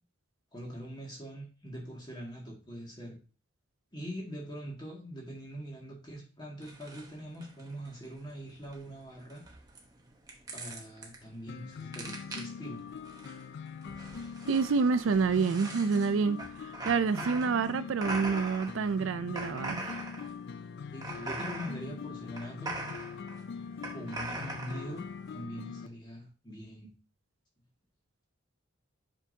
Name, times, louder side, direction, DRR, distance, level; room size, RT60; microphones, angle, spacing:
voice 1, 0.5-3.2 3.9-9.4 10.5-12.8 20.9-22.7 23.9-26.9, equal, 20° left, 2.0 m, -43 dB
sound 1, 6.6-25.4, right 2 dB, 20° right, 1.0 m, -42 dB
sound 2, 11.5-25.9, left 6 dB, 55° left, 0.3 m, -43 dB
voice 2, 14.5-20.0, right 5 dB, 70° right, 0.4 m, -28 dB
7.3 x 5.3 x 2.8 m
head